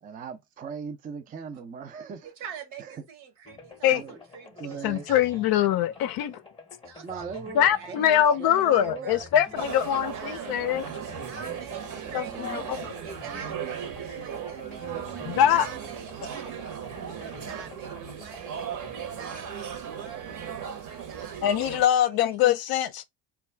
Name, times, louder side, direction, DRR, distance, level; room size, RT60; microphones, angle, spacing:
voice 1, 0.0-2.3 2.8-3.0 3.9-4.2 4.6-5.1 7.0-9.2 11.8-12.8, right 6 dB, 20° right, 0.4 m, -40 dB
voice 2, 2.2-5.7 5.9-6.1 6.8-10.7 11.2-12.6 13.0-18.8 19.1-20.7 21.0-21.6 21.9-22.4, right 7 dB, 70° right, 1.2 m, -45 dB
sound 1, 3.5-20.4, left 4 dB, 10° left, 0.8 m, -49 dB
voice 3, 4.8-6.4 7.6-10.8 12.1-12.9 15.2-15.7 21.4-23.1, left 10 dB, 50° left, 0.5 m, -23 dB
sound 2, 9.5-21.8, right 8 dB, 40° right, 0.8 m, -37 dB
2.3 x 2.3 x 3.2 m
hypercardioid pair, 80°, 50 cm